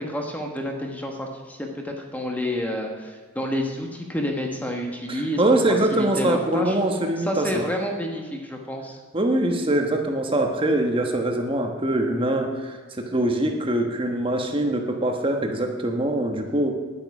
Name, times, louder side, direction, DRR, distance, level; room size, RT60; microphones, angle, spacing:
voice 1, 0.0-5.4 5.9-6.8 7.2-9.0, left 1 dB, 5° left, 2 dB, 1.3 m, -29 dB
voice 2, 5.1-7.6 9.1-16.7, right 1 dB, 25° right, 3 dB, 1.2 m, -23 dB
10.5 x 9.2 x 6.0 m, 1.5 s
head